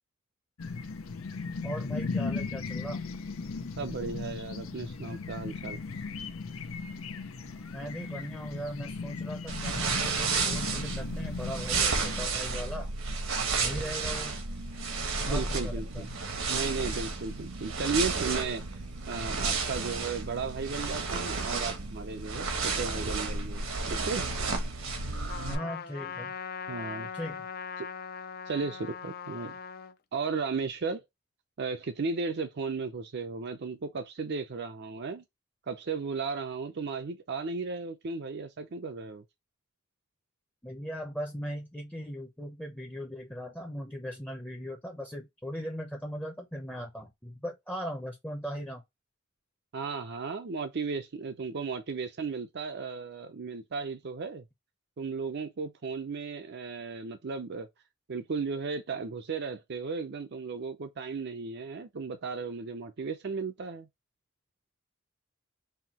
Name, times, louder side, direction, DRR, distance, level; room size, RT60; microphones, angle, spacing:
sound 1, 0.6-12.3, left 4 dB, 85° left, 0.7 m, -37 dB
voice 1, 1.6-3.0 7.7-12.9 13.6-14.4 15.3-16.1 25.5-26.3 27.1-27.5 40.6-48.8, equal, 5° left, 0.7 m, -39 dB
voice 2, 3.8-5.8 15.2-16.1 16.5-24.2 26.7-27.1 27.8-27.9 28.5-29.6 30.1-31.0 31.6-35.2 35.7-39.2 49.7-54.4 55.0-57.7 58.1-63.9, right 4 dB, 55° right, 0.5 m, -35 dB
sound 2, 9.5-25.5, right 4 dB, 85° right, 1.2 m, -32 dB
Trumpet, 25.3-29.9, left 6 dB, 50° left, 0.5 m, -40 dB
5.6 x 2.7 x 2.8 m
head